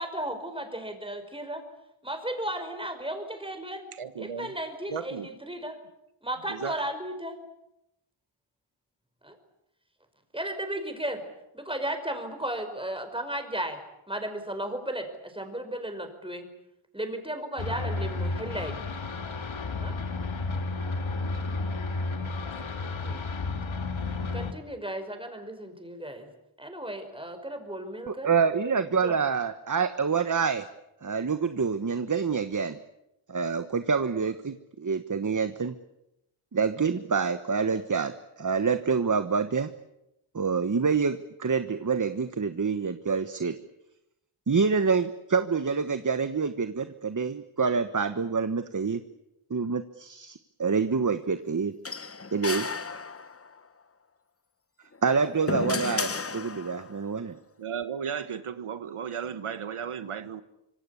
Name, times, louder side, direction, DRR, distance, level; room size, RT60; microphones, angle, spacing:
voice 1, 0.0-1.6 2.0-3.8 4.2-5.8 6.2-7.4 9.2-9.4 10.3-11.2 11.5-13.8 14.1-16.5 16.9-18.8 19.8-20.0 23.0-23.2 24.3-26.3 26.6-28.3 28.7-29.2, right 1 dB, 10° right, 5.4 m, -35 dB
voice 2, 4.0-4.6 4.9-5.3 6.5-6.8 57.6-60.4, right 7 dB, 85° right, 1.5 m, -35 dB
sound 1, 17.6-24.5, left 3 dB, 65° left, 2.3 m, -32 dB
voice 3, 28.1-30.7 31.0-32.8 33.3-35.7 36.5-39.7 40.3-43.6 44.5-49.0 49.5-51.7 52.3-52.7 55.0-57.4, right 5 dB, 35° right, 1.3 m, -27 dB
sound 2, 51.9-53.6 54.9-57.0, left 4 dB, 25° left, 1.0 m, -33 dB
26.0 x 26.0 x 8.5 m
wide cardioid pair, 100°, 50 cm